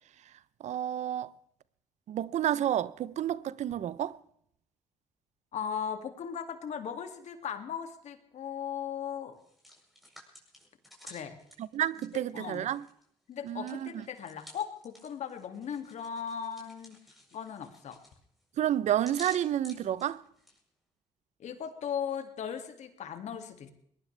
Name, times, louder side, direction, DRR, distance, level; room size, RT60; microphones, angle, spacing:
voice 1, 0.6-1.3 2.1-4.2 11.6-12.8 13.4-14.0 18.6-20.2, right 11 dB, 65° right, 0.7 m, -30 dB
voice 2, 5.5-9.4 11.0-11.4 12.1-12.7 13.3-17.0 17.3-18.0 21.4-23.7, left 8 dB, 65° left, 2.3 m, -38 dB
Hands, 9.3-13.0 13.3-20.6, left 1 dB, ahead, 7.6 m, -53 dB
22.5 x 19.0 x 3.3 m
supercardioid pair, 70°, 13 cm